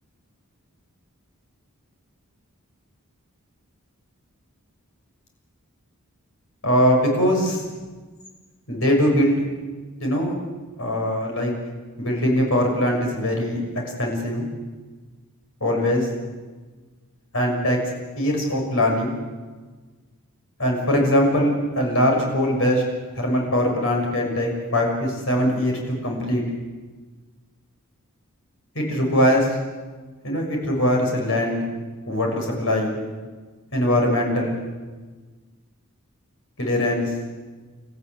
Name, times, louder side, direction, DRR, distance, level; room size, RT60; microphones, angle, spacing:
voice 1, 6.6-7.6 8.7-9.4 10.0-10.3 10.8-11.5 12.0-13.6 14.0-14.5 15.6-16.1 17.3-17.8 18.2-19.2 20.6-22.8 23.2-26.4 28.7-29.5 30.2-31.7 32.1-33.0 33.7-34.6 36.6-37.1, equal, 65° left, 1 dB, 6.5 m, -21 dB
29.0 x 14.5 x 8.2 m, 1.4 s
head